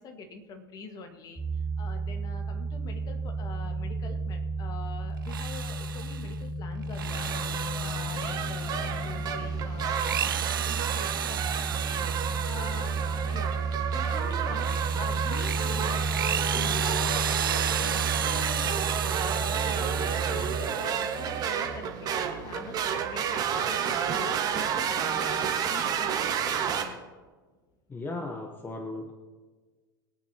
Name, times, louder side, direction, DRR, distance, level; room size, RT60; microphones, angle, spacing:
voice 1, 0.0-7.4 7.8-13.5 13.9-17.1 17.8-26.3 26.8-27.0, left 3 dB, 35° left, 6 dB, 1.7 m, -44 dB
sound 1, 1.3-20.6, right 3 dB, 10° right, 1.0 m, -32 dB
Drill, 5.2-6.3 6.8-9.2 9.8-13.5 14.0-21.5, right 10 dB, 75° right, 0.4 m, -33 dB
sound 2, 7.0-26.8, right 7 dB, 35° right, 1.6 m, -31 dB
voice 2, 27.9-29.1, left 2 dB, 15° left, 4 dB, 1.2 m, -36 dB
22.5 x 9.0 x 3.0 m, 1.3 s
figure-of-eight pair, 90°, 12 cm